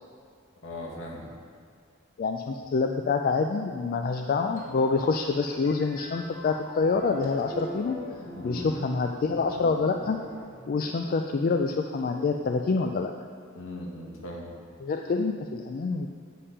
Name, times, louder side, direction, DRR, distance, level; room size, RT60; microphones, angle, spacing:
voice 1, 0.6-1.3 8.3-8.7 13.5-14.5, left 1 dB, 65° left, -2 dB, 1.5 m, -38 dB
voice 2, 2.2-8.0 8.4-10.2 10.7-13.1 14.8-16.1, left 4 dB, 45° left, 4 dB, 0.3 m, -26 dB
sound 1, 4.6-11.3, left 1 dB, 10° left, 1.5 m, -41 dB
8.4 x 5.4 x 5.6 m, 2.3 s
head